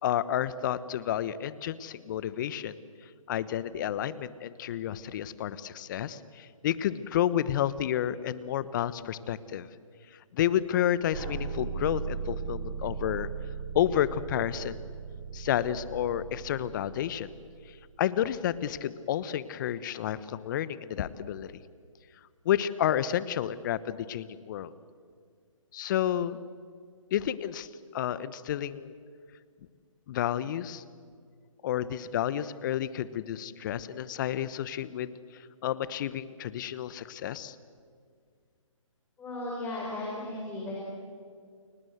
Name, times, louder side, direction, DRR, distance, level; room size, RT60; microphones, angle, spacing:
voice 1, 0.0-2.8 3.3-9.7 10.3-13.3 13.7-14.9 15.3-17.3 17.7-21.5 22.4-24.7 25.7-26.4 27.1-28.9 30.1-30.8 31.6-37.6, left 11 dB, 35° left, 17 dB, 1.1 m, -30 dB
sound 1, 11.1-18.0, right 6 dB, 45° right, 6.1 m, -38 dB
voice 2, 39.2-40.7, left 2 dB, 10° left, -4 dB, 5.2 m, -35 dB
30.0 x 22.5 x 8.1 m, 2.1 s
figure-of-eight pair, 140°, 17 cm